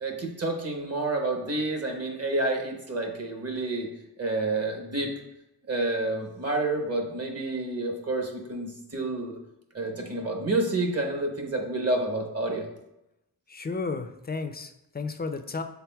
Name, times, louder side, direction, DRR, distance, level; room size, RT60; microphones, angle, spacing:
voice 1, 0.0-3.9 4.2-5.1 5.7-9.4 9.7-12.7, right 2 dB, 40° right, 2 dB, 0.9 m, -29 dB
voice 2, 13.5-15.6, left 4 dB, 25° left, 8 dB, 0.3 m, -33 dB
5.8 x 4.0 x 2.3 m, 0.88 s
wide cardioid pair, 80°, 39 cm